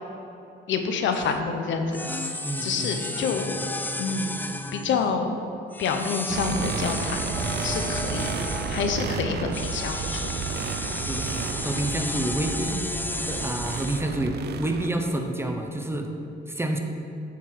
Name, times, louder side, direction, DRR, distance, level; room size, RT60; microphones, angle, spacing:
voice 1, 0.7-2.3 2.6-3.7 4.0-4.4 4.7-5.3 5.8-7.2 7.6-10.3, left 5 dB, 75° left, 5 dB, 0.8 m, -28 dB
sound 1, 1.1-1.3 1.9-5.1 5.7-9.0 9.5-14.0, left 2 dB, 10° left, 0.4 m, -33 dB
voice 2, 2.4-3.3 11.0-12.9 13.3-16.1 16.5-16.8, right 1 dB, 10° right, 4 dB, 0.8 m, -29 dB
sound 2, 6.3-14.9, right 6 dB, 55° right, 0.5 m, -32 dB
8.2 x 4.6 x 5.8 m, 2.8 s
cardioid pair, 90°, 20 cm